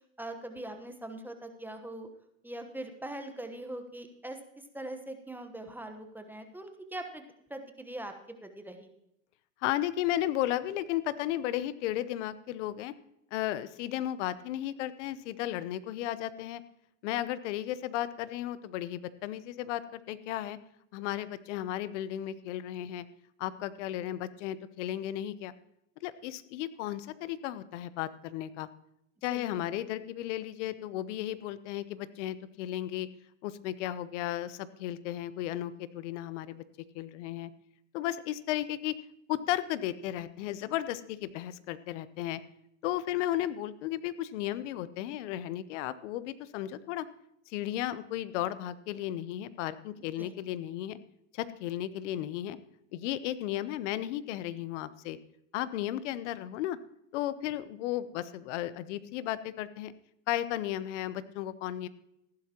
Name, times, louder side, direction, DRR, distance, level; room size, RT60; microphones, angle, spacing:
voice 1, 0.2-2.1 2.4-7.2 7.5-8.9 29.3-29.4 50.2-50.3, right 1 dB, 5° right, 6 dB, 1.1 m, -42 dB
voice 2, 9.6-12.9 13.3-16.6 17.0-20.6 20.9-23.0 23.4-25.5 26.0-28.7 29.2-33.1 33.4-36.6 36.9-37.5 37.9-38.9 39.3-42.4 42.8-47.0 47.5-51.0 51.3-52.6 52.9-55.2 55.5-56.8 57.1-59.9 60.3-61.9, left 13 dB, 60° left, 15 dB, 0.9 m, -34 dB
15.0 x 11.5 x 2.9 m, 0.78 s
hypercardioid pair, 110°, 41 cm